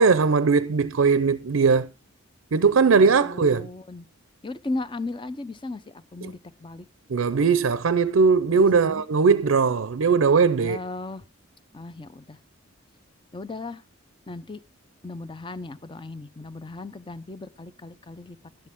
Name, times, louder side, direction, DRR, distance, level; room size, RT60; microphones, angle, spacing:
voice 1, 0.0-1.9 2.5-3.7 6.2-6.3 7.1-10.8, right 5 dB, 80° right, 0.5 m, -19 dB
voice 2, 3.0-4.1 4.4-6.9 8.5-9.0 10.6-11.3 11.7-12.4 13.3-13.8 14.3-14.6 15.0-18.4, left 2 dB, 25° left, 0.6 m, -36 dB
11.5 x 9.8 x 3.5 m
head